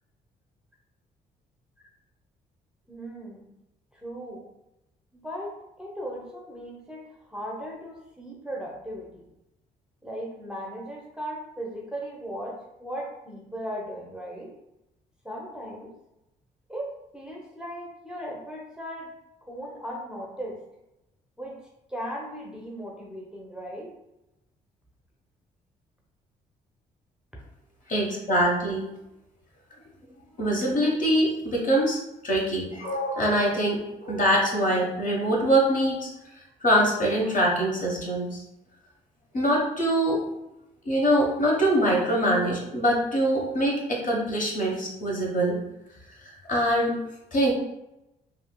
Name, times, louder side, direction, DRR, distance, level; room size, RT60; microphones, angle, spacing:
voice 1, 2.9-3.5 3.9-4.5 5.1-9.3 10.0-14.5 15.2-15.9 16.7-19.1 19.5-20.6 21.4-21.6 21.9-23.9, equal, 5° right, -2 dB, 0.7 m, -37 dB
voice 2, 27.9-28.9 30.4-36.1 36.6-38.4 39.3-40.2 40.8-45.6 46.2-46.9 47.3-47.5, right 1 dB, 45° left, -2 dB, 1.0 m, -24 dB
3.4 x 2.4 x 2.2 m, 0.89 s
supercardioid pair, 55°, 19 cm